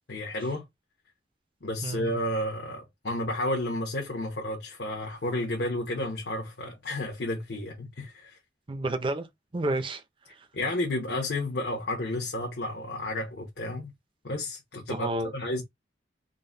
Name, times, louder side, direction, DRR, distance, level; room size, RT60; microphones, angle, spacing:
voice 1, 0.1-0.6 1.6-8.4 10.5-13.9 14.2-15.6, left 1 dB, 65° left, 0.9 m, -31 dB
voice 2, 1.8-2.1 8.7-9.3 9.5-10.0 14.9-15.3, right 2 dB, 30° right, 0.5 m, -30 dB
3.8 x 2.2 x 3.7 m
head